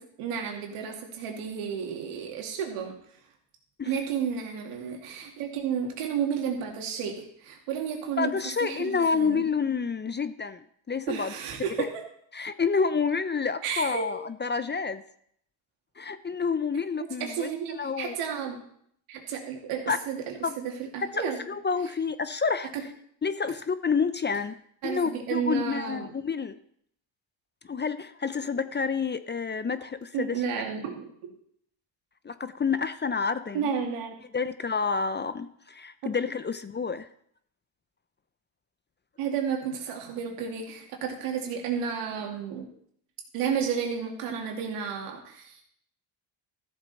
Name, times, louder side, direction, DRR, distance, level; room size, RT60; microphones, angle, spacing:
voice 1, 0.2-2.9 3.9-9.4 11.1-11.9 13.6-14.1 17.2-18.6 19.1-21.4 22.7-22.8 24.8-26.1 30.1-31.3 33.5-34.2 36.0-36.1 39.2-42.7 43.3-45.6, right 7 dB, 90° right, 1 dB, 2.5 m, -32 dB
voice 2, 8.2-11.3 12.3-15.0 16.0-17.5 17.8-18.1 19.9-20.0 20.4-20.6 21.0-22.7 23.2-24.6 24.8-26.6 27.7-30.4 32.2-33.6 34.3-37.1, left 5 dB, 20° left, 13 dB, 0.5 m, -29 dB
14.0 x 7.3 x 4.3 m, 0.68 s
cardioid pair, 90°, 49 cm